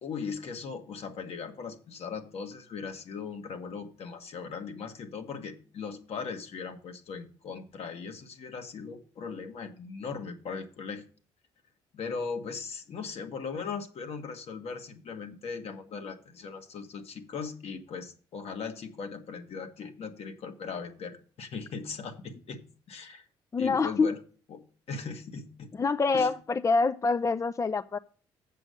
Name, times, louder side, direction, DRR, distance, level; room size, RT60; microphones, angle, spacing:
voice 1, 0.0-11.0 11.9-22.6 22.9-23.2 23.6-24.2 24.5-25.7 26.1-26.3, left 5 dB, 60° left, 6 dB, 1.5 m, -39 dB
voice 2, 23.5-24.1 25.7-28.0, left 4 dB, 25° left, 14 dB, 0.4 m, -26 dB
7.6 x 6.3 x 6.5 m, 0.41 s
supercardioid pair, 60°, 12 cm